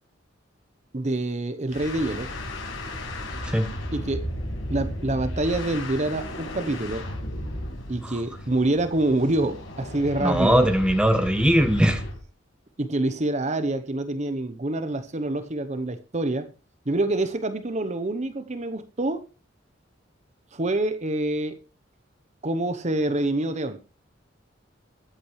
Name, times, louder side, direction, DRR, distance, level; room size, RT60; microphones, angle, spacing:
voice 1, 0.9-2.3 3.9-4.3 4.7-7.0 7.9-10.7 12.8-16.5 16.9-19.2 20.5-21.6 22.4-23.8, right 2 dB, 35° right, 0.9 m, -26 dB
sound 1, 1.7-12.2, left 1 dB, 85° left, 6.9 m, -34 dB
voice 2, 10.2-12.0, equal, 5° right, 1.3 m, -20 dB
21.5 x 8.6 x 3.2 m
head